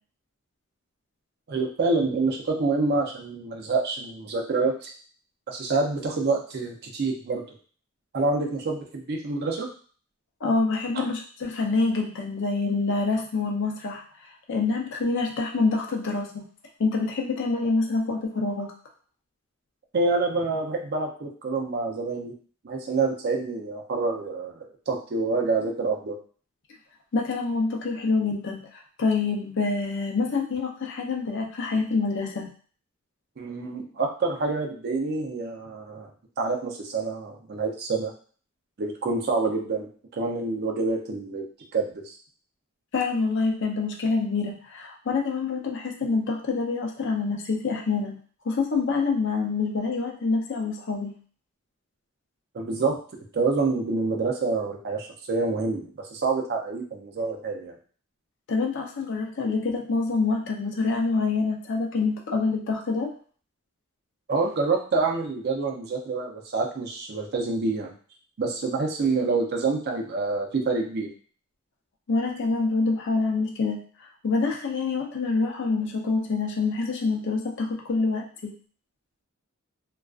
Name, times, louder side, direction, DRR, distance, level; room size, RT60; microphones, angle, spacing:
voice 1, 1.5-4.9 5.5-7.4 8.1-9.7 10.9-11.1 19.9-22.3 22.6-26.2 33.4-36.1 36.4-38.1 38.8-41.4 41.7-42.1 52.5-53.0 53.3-57.8 64.3-67.9 68.4-71.1, right 3 dB, 50° right, 1 dB, 0.5 m, -27 dB
voice 2, 10.4-14.0 14.5-16.4 16.8-18.7 27.1-32.5 42.9-48.1 48.4-51.1 58.5-63.1 72.1-73.8 74.2-78.5, left 4 dB, 60° left, 1 dB, 0.5 m, -26 dB
2.4 x 2.3 x 2.3 m, 0.43 s
head